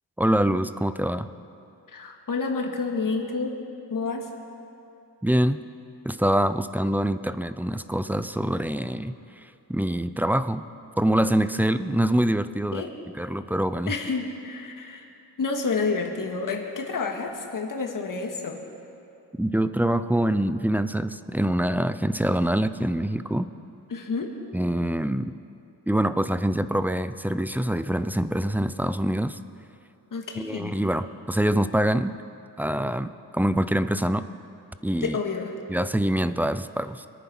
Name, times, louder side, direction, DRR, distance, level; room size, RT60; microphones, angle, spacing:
voice 1, 0.2-1.3 5.2-5.6 6.0-9.1 9.7-10.6 11.0-12.8 13.2-13.9 19.4-23.5 24.5-25.4 25.9-29.4 30.4-32.1 32.6-34.2 34.8-35.2 35.7-37.1, right 1 dB, 5° right, 12 dB, 0.3 m, -25 dB
voice 2, 1.9-3.6 3.9-4.3 12.7-12.9 13.9-15.1 15.4-18.6 23.9-24.3 30.1-30.7 35.0-35.5, left 4 dB, 55° left, 2 dB, 1.9 m, -29 dB
25.5 x 9.4 x 6.0 m, 2.7 s
wide cardioid pair, 125°, 39 cm